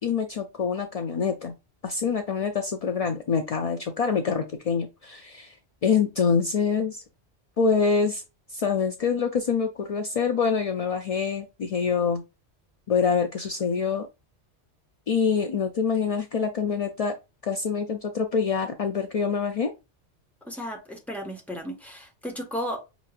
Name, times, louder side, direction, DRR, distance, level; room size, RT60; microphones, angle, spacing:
voice 1, 0.0-1.5 1.8-5.6 5.8-7.0 7.6-8.2 8.5-12.2 12.9-14.1 15.1-17.2 17.4-19.7, left 6 dB, 60° left, 0.4 m, -25 dB
voice 2, 20.4-22.8, equal, ahead, 1.1 m, -34 dB
5.5 x 3.1 x 2.4 m
omnidirectional pair, 1.2 m